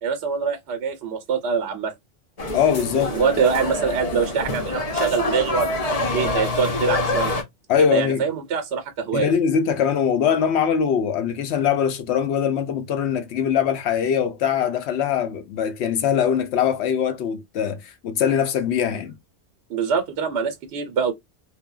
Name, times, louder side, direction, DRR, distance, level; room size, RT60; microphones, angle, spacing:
voice 1, 0.0-1.9 3.0-5.7 6.1-7.4 7.8-9.3 19.7-21.1, right 6 dB, 75° right, 0.8 m, -24 dB
sound 1, 2.4-7.4, left 2 dB, 40° left, 0.6 m, -26 dB
voice 2, 2.5-3.2 7.7-8.2 9.1-19.2, left 7 dB, 80° left, 0.8 m, -22 dB
3.2 x 2.1 x 2.3 m
omnidirectional pair, 1.1 m